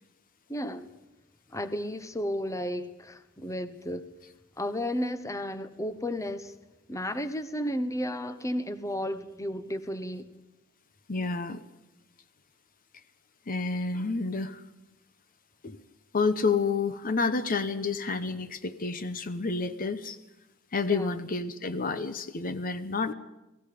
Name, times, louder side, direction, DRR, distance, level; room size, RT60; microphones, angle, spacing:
voice 1, 0.5-0.9 1.5-4.0 4.6-6.5 6.9-10.3 20.8-21.1, equal, 15° left, 1.0 m, -33 dB
voice 2, 11.1-11.6 13.5-14.6 15.6-15.8 16.1-20.2 20.7-23.1, left 4 dB, 40° left, 0.8 m, -29 dB
29.0 x 18.5 x 5.1 m
head